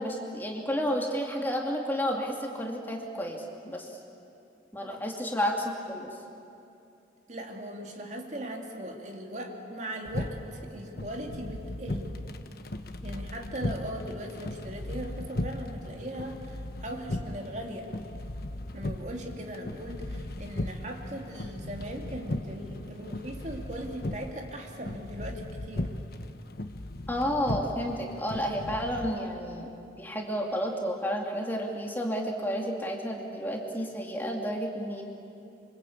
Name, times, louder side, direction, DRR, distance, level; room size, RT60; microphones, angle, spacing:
voice 1, 0.0-3.9 4.7-6.1 27.1-29.7 30.0-35.0, equal, 10° left, 0 dB, 2.4 m, -31 dB
voice 2, 7.3-12.1 13.0-17.9 18.7-25.9, right 1 dB, 40° right, 2 dB, 2.7 m, -39 dB
sound 1, 10.1-29.1, left 1 dB, 55° left, 1.2 m, -37 dB
27.0 x 25.0 x 8.6 m, 2.7 s
head